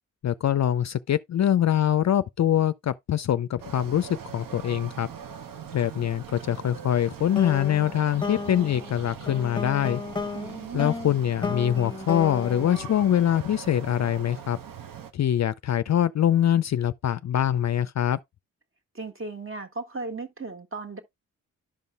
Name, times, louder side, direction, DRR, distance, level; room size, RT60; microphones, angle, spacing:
voice 1, 0.2-5.1 5.7-10.0 10.7-14.6 15.1-18.2, left 10 dB, 45° left, 0.5 m, -24 dB
sound 1, 3.6-15.1, right 8 dB, 60° right, 0.9 m, -42 dB
sound 2, 7.4-13.8, left 4 dB, 10° left, 1.0 m, -34 dB
voice 2, 10.3-11.0 18.9-21.0, right 3 dB, 35° right, 1.6 m, -36 dB
12.0 x 5.3 x 2.2 m
supercardioid pair, 40°, 39 cm